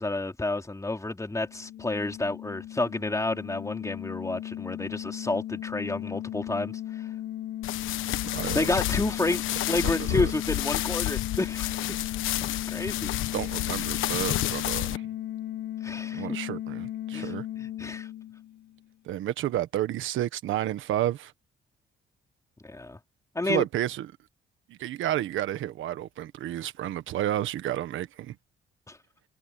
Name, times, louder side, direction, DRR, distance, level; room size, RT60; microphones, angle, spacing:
voice 1, 0.0-7.1 8.5-12.0 12.4-13.1 15.8-16.4 17.1-18.1 22.6-23.0 23.4-23.6 28.9-29.0, left 2 dB, 15° left, 3.7 m, -30 dB
sound 1, 1.4-18.9, left 12 dB, 55° left, 1.1 m, -36 dB
sound 2, 7.6-15.0, left 15 dB, 90° left, 1.2 m, -30 dB
voice 2, 8.3-8.7 9.7-10.3 13.3-15.1 16.1-17.5 19.0-21.3 23.4-24.1 24.7-28.4, right 12 dB, 80° right, 1.4 m, -31 dB
cardioid pair, 90°, 20 cm